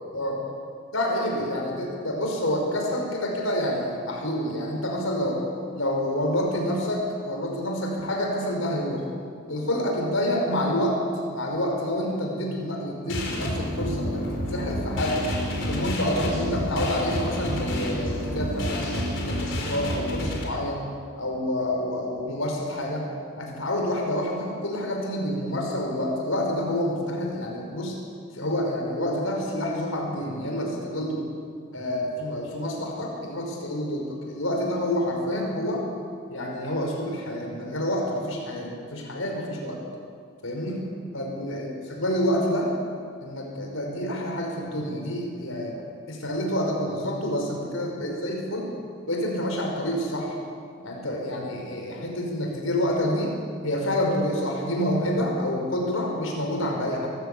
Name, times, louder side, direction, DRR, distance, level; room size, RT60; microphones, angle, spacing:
voice 1, 0.9-5.4 5.7-9.1 9.5-11.0 11.3-15.3 15.6-18.9 19.2-20.8 21.2-23.1 23.4-28.0 28.3-31.2 31.7-35.8 36.3-39.8 40.4-40.8 41.1-42.7 43.2-45.7 46.1-48.7 49.1-50.4 50.8-53.3 53.6-57.1, left 1 dB, 80° left, 0 dB, 5.4 m, -28 dB
sound 1, 13.1-20.4, equal, 60° left, 4.5 m, -29 dB
23.5 x 15.0 x 8.5 m, 2.2 s
head